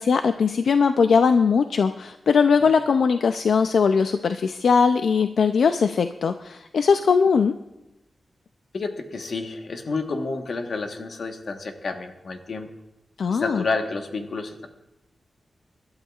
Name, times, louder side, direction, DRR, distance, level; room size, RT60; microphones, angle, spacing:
voice 1, 0.0-7.6 13.2-13.6, left 5 dB, 85° left, 8 dB, 0.4 m, -20 dB
voice 2, 8.7-12.7 13.3-14.7, left 3 dB, 65° left, 5 dB, 1.2 m, -30 dB
25.0 x 12.0 x 2.4 m, 0.93 s
wide cardioid pair, 140°, 0 cm